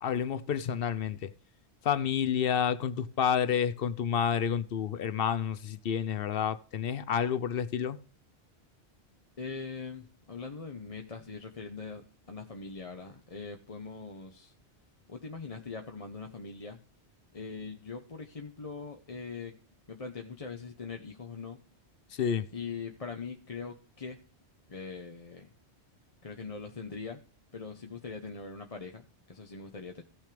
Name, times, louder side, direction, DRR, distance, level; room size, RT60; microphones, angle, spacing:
voice 1, 0.0-1.3 1.8-8.0 22.1-22.5, left 8 dB, 60° left, 0.8 m, -29 dB
voice 2, 9.4-14.5 15.1-16.8 17.3-19.5 19.9-21.6 22.5-24.2 24.7-25.5 26.2-27.2 27.5-30.0, left 4 dB, 35° left, 0.9 m, -42 dB
16.5 x 6.3 x 3.3 m
omnidirectional pair, 1.1 m